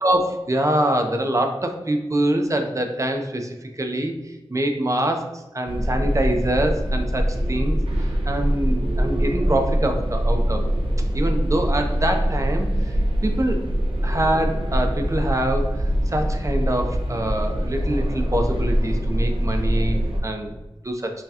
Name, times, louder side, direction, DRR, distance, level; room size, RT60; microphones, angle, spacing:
voice 1, 0.0-4.1 4.5-7.8 8.3-10.6 11.1-12.7 13.2-13.6 14.0-20.6 20.8-21.1, right 1 dB, 35° right, 4 dB, 0.6 m, -24 dB
sound 1, 5.7-20.2, equal, 70° right, 0.8 m, -23 dB
5.6 x 2.2 x 2.8 m, 1.1 s
wide cardioid pair, 50°, 10 cm